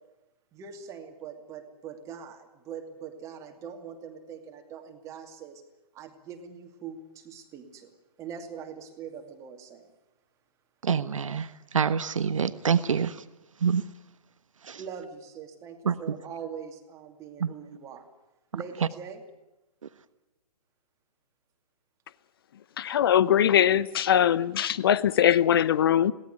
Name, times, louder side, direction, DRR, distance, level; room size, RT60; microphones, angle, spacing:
voice 1, 0.5-5.6 5.9-7.9 8.2-9.9 14.8-18.1 18.5-19.2, right 7 dB, 15° right, 2.5 m, -42 dB
voice 2, 10.8-13.2 13.6-13.8 14.6-14.8 15.8-16.2 17.4-17.5 18.5-18.6, right 6 dB, 50° right, 1.3 m, -27 dB
voice 3, 22.8-26.1, left 10 dB, 35° left, 0.8 m, -21 dB
22.0 x 17.5 x 9.5 m
figure-of-eight pair, 130°, 20 cm